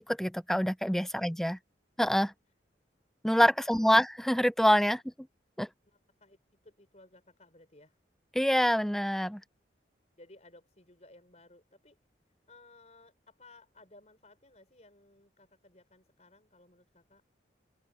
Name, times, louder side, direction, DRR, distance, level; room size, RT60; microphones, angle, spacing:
voice 1, 0.0-1.6 2.0-2.3 3.2-5.0 5.6-5.7 8.3-9.4, equal, ahead, 0.6 m, -26 dB
voice 2, 3.6-4.0 5.8-6.4 6.6-8.0 10.2-12.0 12.5-17.2, left 2 dB, 40° left, 5.9 m, -58 dB
open air
head